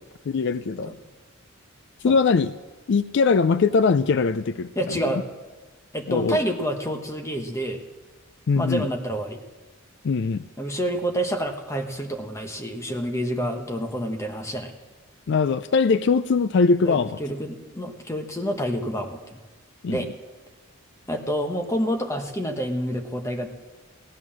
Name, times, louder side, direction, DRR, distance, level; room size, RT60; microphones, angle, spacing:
voice 1, 0.3-0.9 2.0-2.5 2.9-4.7 6.1-6.4 8.5-8.9 10.0-10.4 15.3-17.2 19.8-20.0, left 4 dB, 55° left, 13 dB, 0.4 m, -21 dB
voice 2, 4.7-5.2 5.9-7.8 8.5-9.4 10.6-14.7 16.8-19.4 19.9-20.1 21.1-23.5, equal, 15° left, 4 dB, 1.1 m, -28 dB
16.5 x 11.0 x 7.4 m, 1.2 s
head